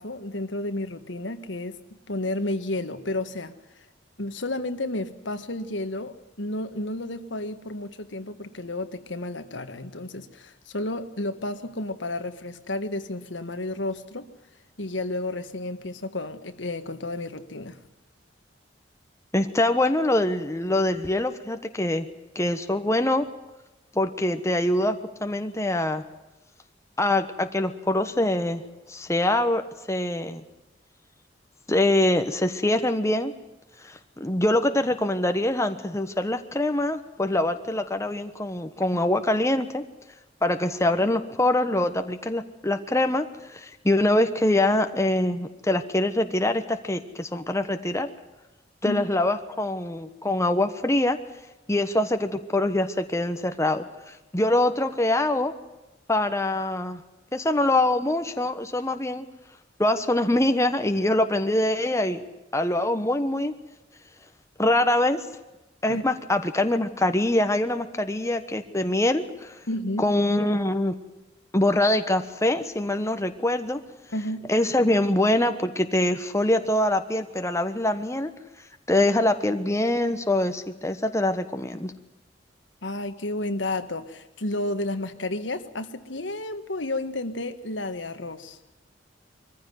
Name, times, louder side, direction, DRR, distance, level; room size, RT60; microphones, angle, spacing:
voice 1, 0.0-1.8 2.1-3.5 4.2-14.3 14.8-17.8 38.9-39.0 48.8-49.0 65.9-66.0 69.7-70.1 74.1-74.5 82.8-88.6, left 2 dB, 80° left, 1.6 m, -31 dB
voice 2, 19.3-22.1 22.3-23.3 23.9-26.0 27.0-28.6 28.9-29.6 29.9-30.4 31.7-33.3 33.8-39.8 40.4-48.1 48.8-51.2 51.7-55.5 56.1-57.0 57.3-59.2 59.8-62.2 62.5-63.5 64.6-65.3 65.8-69.6 70.0-70.9 71.5-73.8 74.5-78.3 78.9-81.9, left 1 dB, 15° left, 1.2 m, -24 dB
23.0 x 15.0 x 9.4 m
head